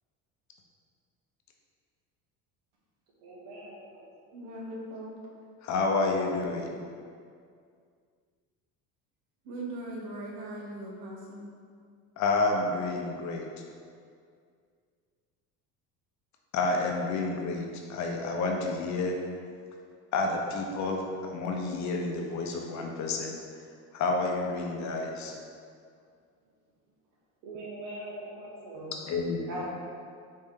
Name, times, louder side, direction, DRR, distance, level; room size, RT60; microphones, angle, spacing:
voice 1, 3.2-4.0 27.4-28.9 29.5-29.6, right 1 dB, 90° right, -5 dB, 1.3 m, -41 dB
voice 2, 4.3-5.2 9.4-11.5, right 1 dB, 70° right, -2 dB, 1.1 m, -39 dB
voice 3, 5.6-6.7 12.2-13.5 16.5-19.2 20.1-23.3 23.9-25.3 29.1-29.5, left 3 dB, 50° left, 1 dB, 0.7 m, -29 dB
4.1 x 3.2 x 3.7 m, 2.2 s
cardioid pair, 115°, 37 cm